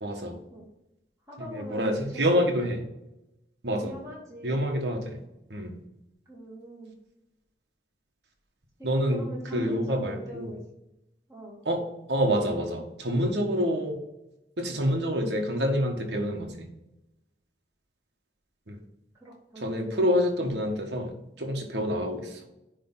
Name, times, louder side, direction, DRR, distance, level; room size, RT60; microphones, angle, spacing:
voice 1, 0.0-0.4 1.4-2.8 3.6-4.0 4.4-5.2 5.5-5.8 8.8-9.3 9.5-10.5 11.6-11.8 12.1-14.0 14.6-16.5 18.7-18.8 19.6-22.4, equal, 80° right, 2 dB, 1.4 m, -27 dB
voice 2, 1.3-2.3 3.8-4.6 6.3-7.0 8.9-10.6 11.3-11.6 19.2-19.7, equal, 20° right, -5 dB, 2.4 m, -42 dB
10.0 x 3.4 x 3.9 m, 0.90 s
head